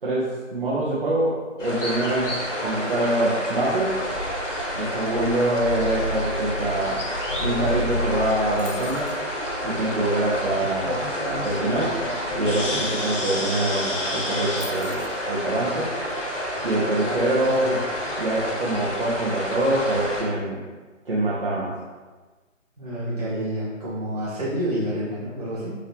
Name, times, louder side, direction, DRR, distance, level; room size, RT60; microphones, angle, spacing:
voice 1, 0.0-4.0 4.7-7.0 7.4-9.1 9.6-12.0 12.4-15.0 15.3-15.9 16.6-17.8 18.2-20.6 21.0-21.7, right 1 dB, 45° right, -8 dB, 0.8 m, -25 dB
sound 1, 1.6-20.2, equal, 65° left, 1.2 m, -28 dB
sound 2, 8.6-9.3 13.2-13.3 13.5-13.9 14.6-15.2, left 3 dB, 90° left, 0.8 m, -42 dB
voice 2, 16.7-17.7 22.8-25.7, equal, 30° right, -9 dB, 1.3 m, -29 dB
3.6 x 2.9 x 3.4 m, 1.3 s
figure-of-eight pair, 150°, 39 cm